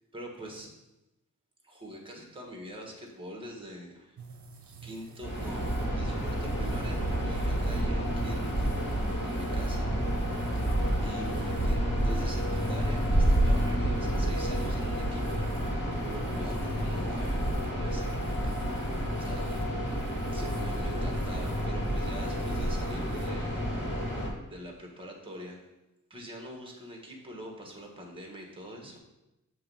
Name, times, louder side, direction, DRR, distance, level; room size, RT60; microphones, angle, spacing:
voice 1, 0.1-0.7 1.6-4.2 4.8-9.9 11.0-17.4 17.7-18.2 19.1-19.7 20.3-23.6 24.1-25.6 26.1-29.0, right 1 dB, 15° right, 0 dB, 1.4 m, -44 dB
sound 1, 4.2-23.3, right 4 dB, 60° right, 0.8 m, -47 dB
sound 2, 5.2-24.3, equal, 35° left, 2.2 m, -29 dB
7.0 x 3.1 x 5.4 m, 0.97 s
wide cardioid pair, 90°, 33 cm